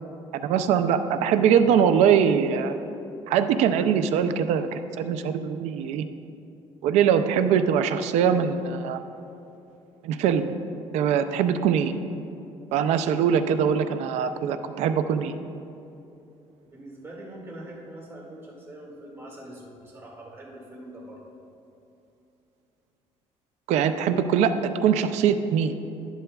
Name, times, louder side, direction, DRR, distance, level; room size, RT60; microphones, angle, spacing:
voice 1, 0.3-2.8 3.3-6.0 6.8-9.0 10.0-10.4 10.9-11.9 12.7-15.3 23.7-24.6 24.8-25.7, right 8 dB, 90° right, 10 dB, 0.5 m, -22 dB
voice 2, 16.6-21.2, right 1 dB, 25° right, -3 dB, 2.0 m, -43 dB
11.0 x 11.0 x 2.3 m, 2.8 s
cardioid pair, 125°, 11 cm